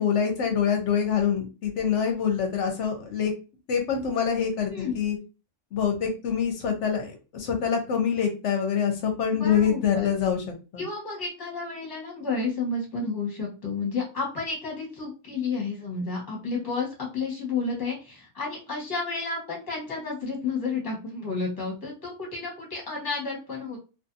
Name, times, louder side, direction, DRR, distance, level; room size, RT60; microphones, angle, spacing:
voice 1, 0.0-3.3 3.7-5.2 5.7-10.4 10.7-10.8, left 7 dB, 65° left, 4 dB, 0.8 m, -25 dB
voice 2, 9.3-10.1 10.8-23.8, left 4 dB, 20° left, -2 dB, 0.9 m, -31 dB
2.5 x 2.5 x 2.5 m, 0.33 s
omnidirectional pair, 1.5 m